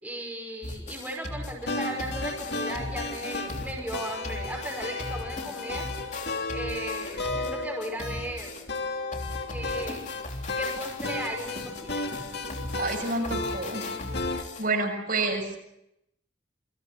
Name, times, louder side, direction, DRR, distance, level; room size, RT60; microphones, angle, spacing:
voice 1, 0.0-5.8 6.5-8.5 9.5-10.0 10.6-12.0, right 1 dB, 5° right, -1 dB, 5.6 m, -36 dB
sound 1, 0.6-8.8 9.1-14.7, left 2 dB, 35° left, 3.5 m, -38 dB
sound 2, 1.7-14.4, left 3 dB, 50° left, 2.7 m, -34 dB
voice 2, 12.8-13.8 14.6-15.6, right 2 dB, 45° right, 2 dB, 7.0 m, -28 dB
29.0 x 24.0 x 6.2 m, 0.80 s
head